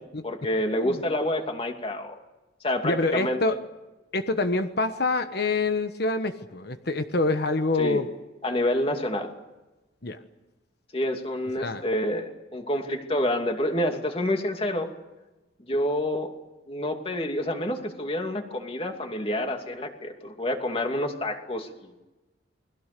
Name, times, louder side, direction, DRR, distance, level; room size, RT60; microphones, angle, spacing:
voice 1, 0.2-2.2 2.6-3.4 7.8-8.0 8.4-9.3 10.9-14.9 15.7-16.3 16.7-21.9, left 1 dB, 30° left, 4 dB, 2.6 m, -28 dB
voice 2, 2.8-3.6 4.1-8.1 10.0-10.2 11.6-11.8, left 3 dB, 55° left, 9 dB, 1.2 m, -26 dB
29.0 x 21.5 x 6.8 m, 1.1 s
head